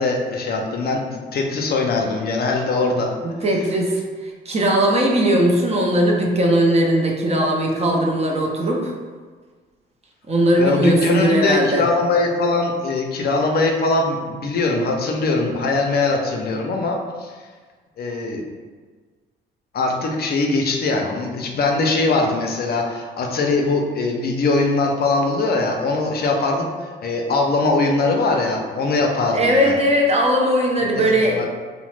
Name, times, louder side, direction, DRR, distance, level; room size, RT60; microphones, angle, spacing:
voice 1, 0.0-3.2 10.6-17.4 18.0-18.4 19.7-29.7 30.9-31.5, left 3 dB, 50° left, 1 dB, 0.5 m, -21 dB
voice 2, 3.2-8.9 10.3-11.8 29.3-31.5, right 1 dB, 30° right, 0 dB, 0.5 m, -19 dB
2.8 x 2.1 x 3.1 m, 1.5 s
cardioid pair, 90°, 20 cm